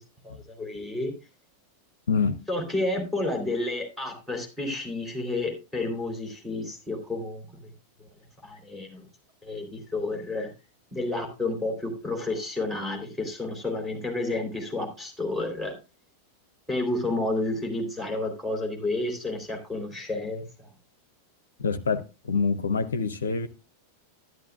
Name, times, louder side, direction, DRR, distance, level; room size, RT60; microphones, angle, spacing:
voice 1, 0.2-1.1 2.5-7.5 8.4-9.0 9.4-10.5 10.9-15.7 16.7-20.4, left 2 dB, 5° right, 3.6 m, -30 dB
voice 2, 2.1-2.4 21.6-23.5, left 5 dB, 70° left, 0.6 m, -26 dB
11.5 x 10.5 x 2.5 m
figure-of-eight pair, 90°, 0 cm